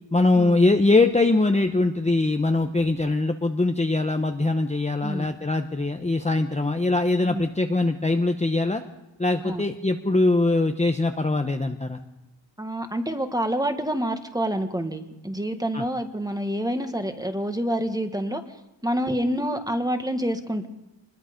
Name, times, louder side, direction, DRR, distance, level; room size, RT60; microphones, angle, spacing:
voice 1, 0.1-8.8 9.2-12.0 15.7-15.8, left 2 dB, 15° left, 4 dB, 0.9 m, -22 dB
voice 2, 12.6-18.4 18.8-20.7, equal, 10° right, 7 dB, 1.5 m, -27 dB
26.0 x 21.0 x 5.2 m, 0.96 s
wide cardioid pair, 135°, 44 cm